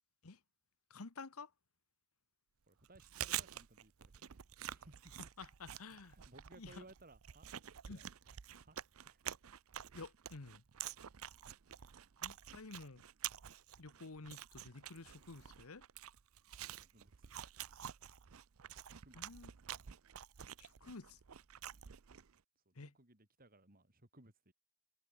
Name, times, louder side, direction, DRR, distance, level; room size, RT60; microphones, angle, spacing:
voice 1, 0.9-1.5 5.4-6.1 6.6-6.8 7.9-8.0 9.9-10.6 12.2-13.0 13.8-15.8 19.2-19.5 20.6-21.2 22.7-22.9, left 3 dB, 85° left, 1.2 m, -51 dB
voice 2, 2.7-4.3 4.7-5.3 5.9-7.5 7.9-8.1 8.6-8.8 9.0-9.2 16.8-17.4 18.8-19.4 22.7-24.5, right 2 dB, 45° right, 5.2 m, -62 dB
Chewing mastication, 2.8-22.4, right 11 dB, 75° right, 0.6 m, -48 dB
head